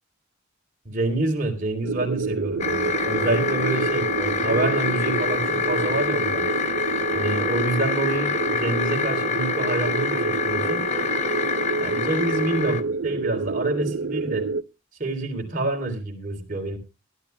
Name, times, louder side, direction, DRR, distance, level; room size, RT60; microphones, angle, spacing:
voice 1, 0.9-6.4 7.1-10.8 11.8-14.5 15.0-16.8, right 2 dB, 40° right, 2 dB, 3.5 m, -27 dB
sound 1, 1.8-14.6, right 4 dB, 70° right, 0.6 m, -28 dB
sound 2, 2.6-12.8, left 6 dB, 35° left, 0.8 m, -27 dB
23.0 x 12.0 x 2.2 m, 0.29 s
head